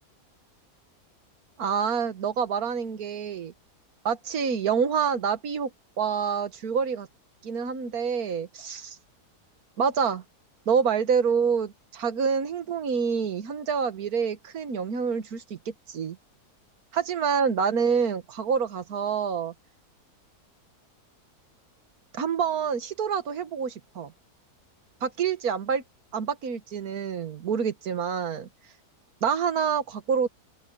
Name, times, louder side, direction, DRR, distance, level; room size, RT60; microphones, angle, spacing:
voice 1, 1.6-3.5 4.1-5.7 6.0-7.1 7.4-9.0 9.8-10.2 10.7-16.2 16.9-19.5 22.1-24.1 25.0-25.8 26.1-28.5 29.2-30.3, right 6 dB, 65° right, 1.8 m, -27 dB
open air
omnidirectional pair, 1.7 m